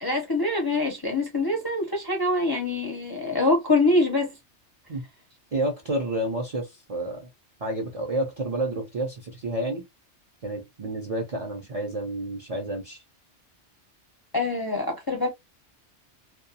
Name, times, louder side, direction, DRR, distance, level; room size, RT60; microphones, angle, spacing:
voice 1, 0.0-4.3 14.3-15.3, left 2 dB, 30° left, 0.5 m, -24 dB
voice 2, 5.5-7.3 7.6-9.8 10.4-13.0, right 1 dB, 45° right, 0.5 m, -30 dB
2.3 x 2.2 x 2.7 m
omnidirectional pair, 1.2 m